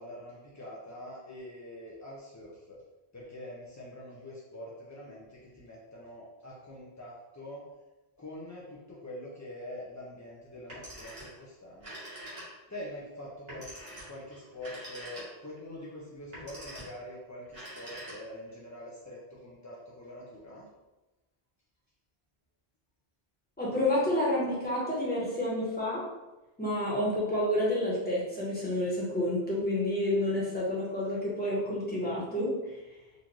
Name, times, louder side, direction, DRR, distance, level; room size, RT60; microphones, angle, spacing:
voice 1, 0.0-2.8 3.1-7.6 8.2-12.0 12.7-20.7, left 1 dB, 30° left, -5 dB, 0.3 m, -45 dB
Telephone, 10.6-11.4 11.7-12.8 13.5-15.6 16.2-17.0 17.5-18.5, right 1 dB, 30° right, 1.4 m, -45 dB
voice 2, 23.6-26.0 26.6-32.8, left 1 dB, 10° left, -7 dB, 1.1 m, -29 dB
4.0 x 2.5 x 3.0 m, 1.1 s
omnidirectional pair, 1.0 m